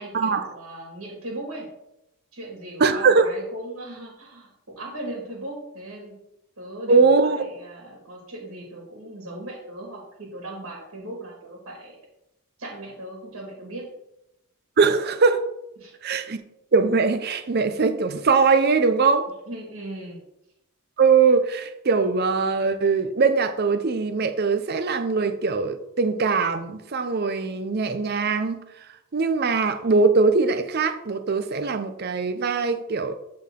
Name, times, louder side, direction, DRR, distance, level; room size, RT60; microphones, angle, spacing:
voice 1, 0.0-1.7 2.3-6.1 6.6-12.0 12.6-13.9 15.8-15.9 19.5-20.2, right 1 dB, 70° right, -1 dB, 2.0 m, -38 dB
voice 2, 2.8-3.4 6.9-7.4 14.8-15.4 16.0-16.4 16.7-19.3 21.0-28.6 29.1-33.1, right 4 dB, 45° right, 9 dB, 0.6 m, -21 dB
11.5 x 3.9 x 3.7 m, 0.85 s
head